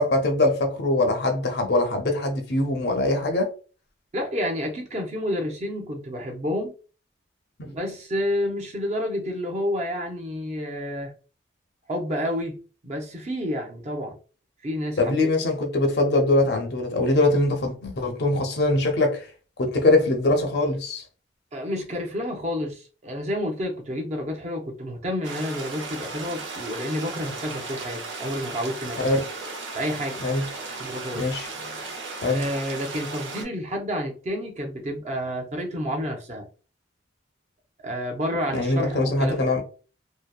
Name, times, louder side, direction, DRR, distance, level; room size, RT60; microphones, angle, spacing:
voice 1, 0.0-3.5 15.0-19.2 19.6-21.0 29.0-29.2 30.2-30.4 31.1-31.5 32.2-32.5 38.5-39.6, left 2 dB, 60° left, 0.5 m, -22 dB
voice 2, 4.1-6.7 7.6-11.1 11.9-14.1 14.6-15.3 21.5-29.2 29.7-30.2 30.7-31.8 32.3-36.5 37.8-39.5, equal, 35° right, 0.5 m, -30 dB
sound 1, 25.2-33.4, right 3 dB, 85° right, 0.6 m, -36 dB
2.6 x 2.0 x 2.3 m
head